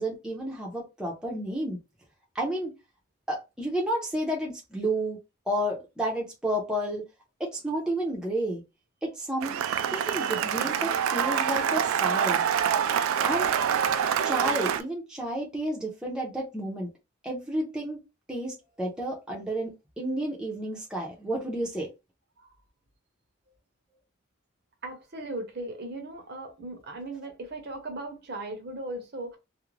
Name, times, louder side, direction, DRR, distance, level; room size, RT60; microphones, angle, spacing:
voice 1, 0.0-1.8 2.3-2.7 3.3-5.2 5.5-7.0 7.4-8.6 9.0-9.5 9.9-12.4 13.2-13.5 14.2-16.9 17.2-18.0 18.3-19.7 20.0-21.9, right 1 dB, 5° right, 0.5 m, -31 dB
Cheering / Applause, 9.4-14.8, right 8 dB, 80° right, 0.3 m, -26 dB
voice 2, 24.8-29.4, right 2 dB, 50° right, 0.7 m, -37 dB
2.4 x 2.0 x 3.1 m
head